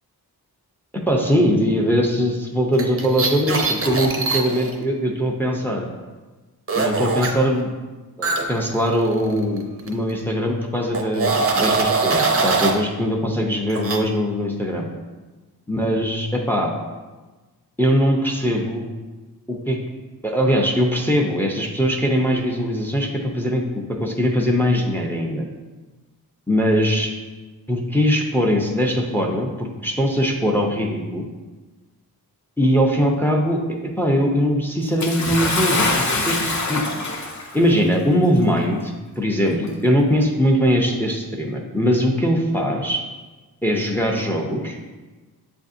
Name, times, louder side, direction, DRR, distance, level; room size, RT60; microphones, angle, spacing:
voice 1, 0.9-5.9 6.8-7.7 8.2-14.9 15.7-16.7 17.8-18.9 19.5-19.8 20.2-25.5 26.5-27.1 27.7-31.3 32.6-33.6 34.0-36.4 36.7-36.8 37.5-43.0 43.6-44.8, equal, 5° left, 1 dB, 0.5 m, -21 dB
sound 1, 2.7-4.7 6.7-7.3 8.2-9.6 9.9-10.1 10.9-12.8 13.7-14.0, right 4 dB, 35° right, 0.6 m, -22 dB
Bathtub (filling or washing) / Splash splatter, 35.0-37.6 38.5-38.6 39.6-39.7, left 3 dB, 45° left, 0.7 m, -23 dB
7.4 x 2.6 x 2.5 m, 1.3 s
wide cardioid pair, 70°, 39 cm